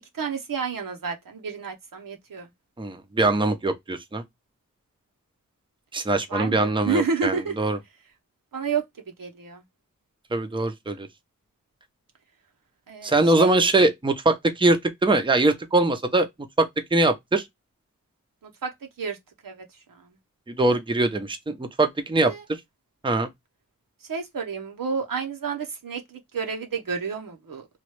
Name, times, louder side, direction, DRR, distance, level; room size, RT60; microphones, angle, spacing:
voice 1, 0.1-2.5 6.3-7.7 8.5-9.6 12.9-13.6 18.4-19.2 19.4-20.1 22.3-22.4 24.0-27.7, right 5 dB, 80° right, 0.8 m, -30 dB
voice 2, 2.8-4.2 5.9-7.8 10.3-11.1 13.0-16.3 16.6-17.4 20.5-22.3 23.0-23.3, right 2 dB, 15° right, 0.6 m, -22 dB
3.0 x 2.3 x 3.1 m
wide cardioid pair, 55°, 33 cm